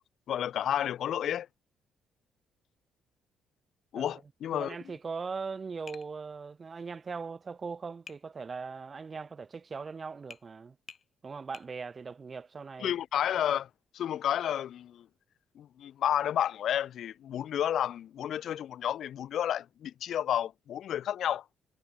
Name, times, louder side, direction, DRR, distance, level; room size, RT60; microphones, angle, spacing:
voice 1, 0.3-1.5 3.9-4.7 12.8-13.7 13.9-15.1 15.6-21.4, left 10 dB, 70° left, 1.0 m, -31 dB
voice 2, 4.5-10.8 11.2-12.9, right 5 dB, 35° right, 7.4 m, -40 dB
Tap, 5.9-6.1 8.1-8.2 10.3-10.5 10.9-11.1 11.5-11.7, left 6 dB, 45° left, 2.9 m, -48 dB
cardioid pair, 90°, 0 cm